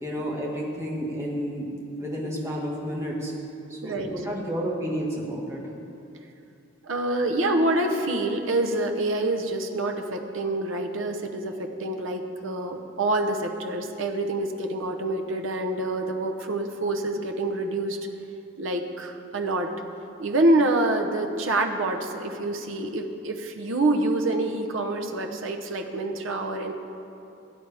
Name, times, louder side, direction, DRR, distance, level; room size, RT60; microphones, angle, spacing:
voice 1, 0.0-3.3 3.7-5.6, equal, 15° right, -3 dB, 1.7 m, -31 dB
voice 2, 3.8-4.1 6.8-18.0 18.6-19.7 20.2-26.7, right 2 dB, 80° right, 4 dB, 0.9 m, -26 dB
17.5 x 9.3 x 3.5 m, 2.7 s
head